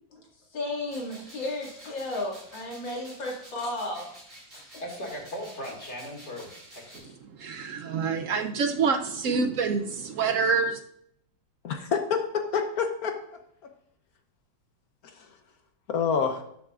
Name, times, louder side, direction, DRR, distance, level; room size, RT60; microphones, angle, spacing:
voice 1, 0.5-4.2 4.5-4.7, left 2 dB, 80° left, -2 dB, 2.9 m, -33 dB
sound 1, 0.9-7.0, right 1 dB, 30° right, 4.3 m, -50 dB
voice 2, 4.8-7.1, equal, 35° left, 1 dB, 2.3 m, -38 dB
voice 3, 7.4-10.8, right 5 dB, 65° right, 6 dB, 0.8 m, -26 dB
voice 4, 11.6-13.2 15.2-15.3 15.9-16.4, left 6 dB, 60° left, 6 dB, 1.2 m, -27 dB
13.0 x 9.1 x 2.5 m, 0.71 s
omnidirectional pair, 2.0 m